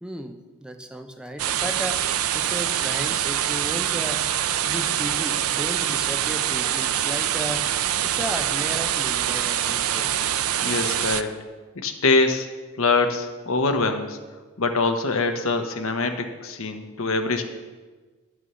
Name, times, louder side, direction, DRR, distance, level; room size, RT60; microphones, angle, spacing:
voice 1, 0.0-2.1 2.3-4.3 4.6-7.7 8.0-10.1, equal, 5° right, 6 dB, 0.5 m, -34 dB
sound 1, 1.4-11.2, right 10 dB, 85° right, 0.5 m, -25 dB
voice 2, 10.6-11.3 11.7-12.5 12.8-14.2 14.6-17.5, left 3 dB, 70° left, 6 dB, 1.0 m, -24 dB
11.0 x 6.2 x 6.9 m, 1.3 s
head